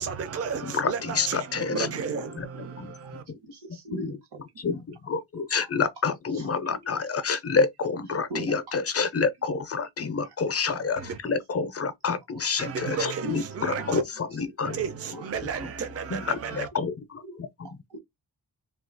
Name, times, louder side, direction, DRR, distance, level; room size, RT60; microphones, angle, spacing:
voice 1, 0.0-3.2 11.0-11.2 12.6-14.0 14.6-16.7, right 6 dB, 35° right, 0.5 m, -33 dB
voice 2, 0.6-1.9 2.4-2.5 2.8-2.9 3.3-3.4 3.9-4.2 4.6-14.8 15.1-15.2 16.1-17.8, left 5 dB, 35° left, 0.5 m, -28 dB
voice 3, 1.7-3.1 3.4-4.7 5.6-5.7 6.7-7.0 8.3-8.8 10.2-10.3 10.8-10.9 13.2-13.9 14.7-14.8 15.1-15.2 17.2-18.0, equal, 65° right, 1.0 m, -39 dB
2.7 x 2.3 x 3.8 m
wide cardioid pair, 160°, 43 cm